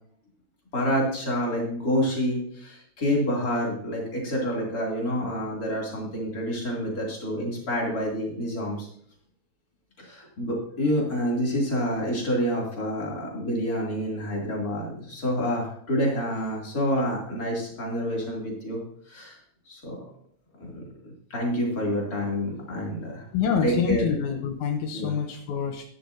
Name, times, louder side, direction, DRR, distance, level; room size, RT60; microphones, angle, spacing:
voice 1, 0.7-8.9 10.0-18.8 19.1-19.4 19.7-20.0 20.6-20.8 21.3-23.2 23.6-24.1 24.9-25.1, equal, 30° left, -3 dB, 3.1 m, -28 dB
voice 2, 23.3-25.8, left 7 dB, 80° left, 4 dB, 2.3 m, -26 dB
12.5 x 11.0 x 2.7 m, 0.66 s
omnidirectional pair, 3.4 m